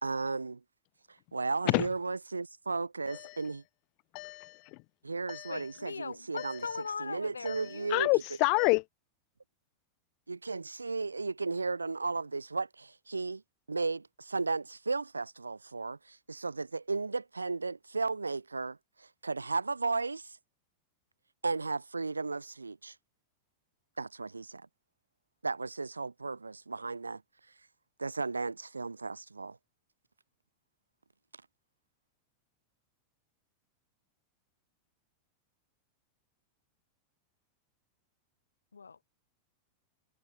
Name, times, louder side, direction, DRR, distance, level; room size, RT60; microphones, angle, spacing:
voice 1, 0.0-0.6 1.3-3.6 5.0-6.6 7.0-8.1 10.3-13.4 13.7-20.4 21.4-22.9 24.0-24.7 25.4-27.2 28.0-29.6, right 3 dB, 80° right, 0.9 m, -35 dB
voice 2, 3.1-3.4 4.1-4.8 5.3-5.5 6.4-6.5 7.5-8.8, left 34 dB, 45° left, 0.5 m, -29 dB
voice 3, 5.5-7.9 38.7-39.0, left 5 dB, 75° left, 3.1 m, -40 dB
figure-of-eight pair, 90°, 0 cm